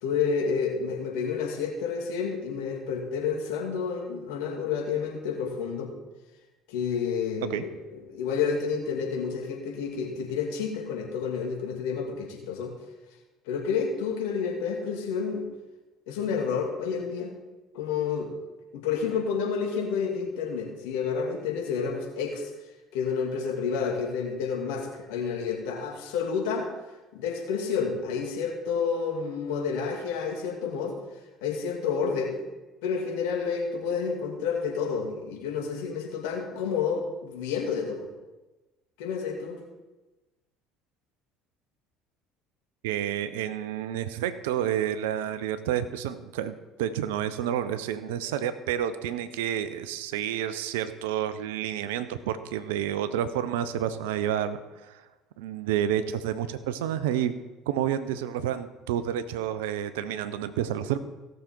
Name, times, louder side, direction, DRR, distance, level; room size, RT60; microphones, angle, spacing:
voice 1, 0.0-5.9 6.7-12.8 13.5-15.5 16.1-17.3 17.7-18.3 18.7-22.5 22.9-26.7 27.1-30.9 31.4-32.4 32.8-38.1 39.0-39.6, left 6 dB, 70° left, 0 dB, 2.4 m, -30 dB
voice 2, 42.8-55.0 55.4-57.4 57.7-61.0, right 10 dB, 75° right, 13 dB, 0.7 m, -29 dB
17.0 x 6.7 x 4.5 m, 1.1 s
hypercardioid pair, 60°, 0 cm